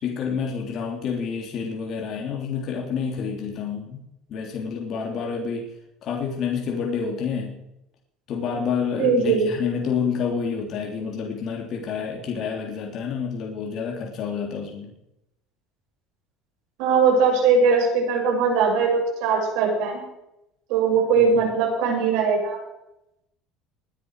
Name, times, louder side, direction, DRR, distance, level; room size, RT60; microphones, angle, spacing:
voice 1, 0.0-4.0 4.3-5.7 6.0-7.5 8.3-14.9 21.2-21.3, left 6 dB, 45° left, 0 dB, 3.2 m, -28 dB
voice 2, 9.0-9.5 16.8-20.0 20.7-22.6, right 5 dB, 80° right, 0 dB, 6.8 m, -20 dB
20.0 x 10.5 x 4.9 m, 0.85 s
cardioid pair, 135°, 0 cm